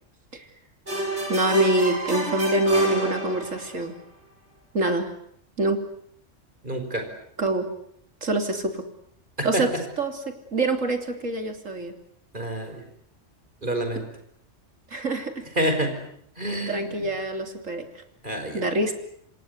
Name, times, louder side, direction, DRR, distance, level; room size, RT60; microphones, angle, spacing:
sound 1, 0.9-3.8, right 1 dB, 60° right, 6.2 m, -29 dB
voice 1, 1.3-4.0 4.7-5.1 5.6-5.8 7.4-7.7 8.2-8.8 9.4-9.7 10.0-12.0 14.0-14.1 14.9-15.5 16.7-18.0 18.5-18.9, right 2 dB, 90° right, 6 dB, 3.7 m, -25 dB
voice 2, 6.6-7.1 9.4-9.6 12.3-12.8 13.6-14.0 15.6-16.0 16.4-17.0 18.2-18.7, right 1 dB, 40° right, 5 dB, 5.5 m, -27 dB
27.5 x 26.0 x 8.1 m, 0.69 s
omnidirectional pair, 1.3 m